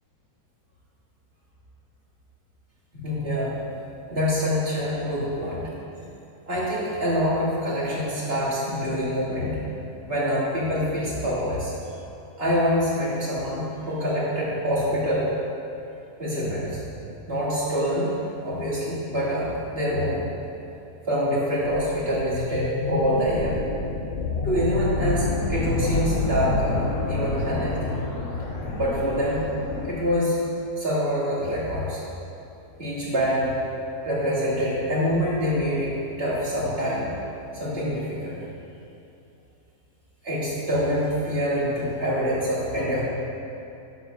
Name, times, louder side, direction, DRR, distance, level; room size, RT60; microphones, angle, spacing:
voice 1, 2.9-3.6 4.1-5.7 6.5-9.6 10.1-11.7 12.4-15.3 16.2-16.8 17.3-18.1 18.4-20.2 21.1-23.6 24.4-27.9 28.7-29.4 29.8-30.4 30.8-32.0 32.8-33.5 34.0-37.1 37.5-38.4 40.2-43.0, equal, 40° right, -8 dB, 2.8 m, -25 dB
sound 1, 21.6-29.9, left 3 dB, 55° left, 1.2 m, -28 dB
11.5 x 4.2 x 6.3 m, 2.7 s
omnidirectional pair, 1.7 m